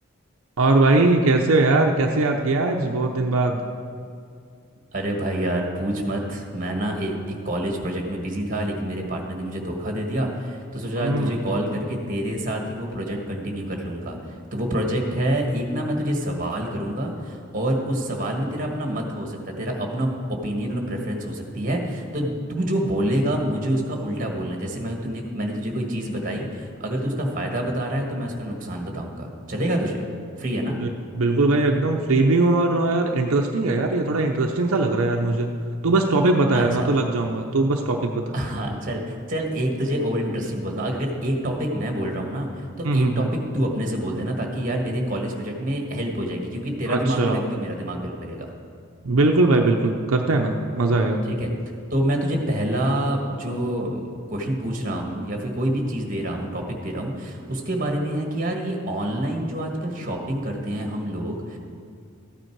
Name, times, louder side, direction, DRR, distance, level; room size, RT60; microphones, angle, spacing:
voice 1, 0.6-3.6 11.0-11.3 30.8-30.9 31.2-38.2 42.8-43.3 46.9-47.4 49.0-51.2, right 2 dB, 80° right, 2 dB, 0.7 m, -20 dB
voice 2, 4.9-14.2 14.5-30.1 30.4-30.8 36.5-36.9 38.3-43.3 43.5-48.5 51.4-51.5 51.9-61.6, right 1 dB, 40° right, 2 dB, 1.5 m, -27 dB
14.0 x 9.1 x 4.7 m, 2.4 s
head